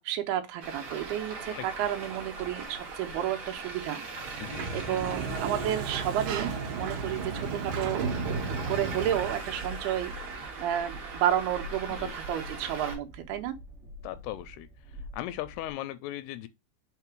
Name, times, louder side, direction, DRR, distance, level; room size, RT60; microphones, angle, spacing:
voice 1, 0.0-4.0 4.3-4.4 4.7-8.1 8.7-13.5, right 11 dB, 90° right, 2.8 m, -31 dB
Traffic noise roadway noise, 0.6-13.0, right 3 dB, 45° right, 2.2 m, -40 dB
voice 2, 1.5-1.9 4.4-4.8 12.0-12.1 14.0-14.7 15.1-16.5, left 14 dB, 90° left, 2.6 m, -38 dB
Sliding door, 4.2-9.5, right 4 dB, 70° right, 2.5 m, -34 dB
Train, 8.9-15.7, right 1 dB, 25° right, 1.9 m, -47 dB
5.9 x 3.7 x 4.6 m
omnidirectional pair, 4.5 m